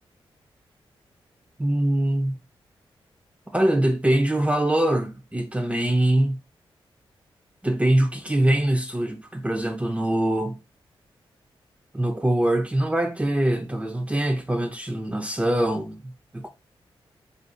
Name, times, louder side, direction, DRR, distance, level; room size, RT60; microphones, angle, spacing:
voice 1, 1.6-2.4 3.5-6.4 7.6-10.6 11.9-16.5, right 1 dB, 15° right, 0.5 m, -23 dB
3.7 x 2.4 x 2.5 m
cardioid pair, 70°, 10 cm